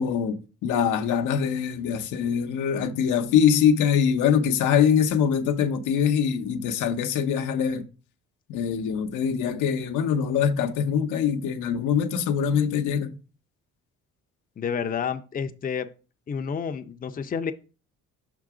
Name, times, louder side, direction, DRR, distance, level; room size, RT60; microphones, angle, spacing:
voice 1, 0.0-7.9 8.5-13.1, left 7 dB, 85° left, 0.7 m, -23 dB
voice 2, 14.6-15.9 16.3-17.5, left 6 dB, 30° left, 0.5 m, -29 dB
5.8 x 3.8 x 4.8 m
cardioid pair, 90°, 30 cm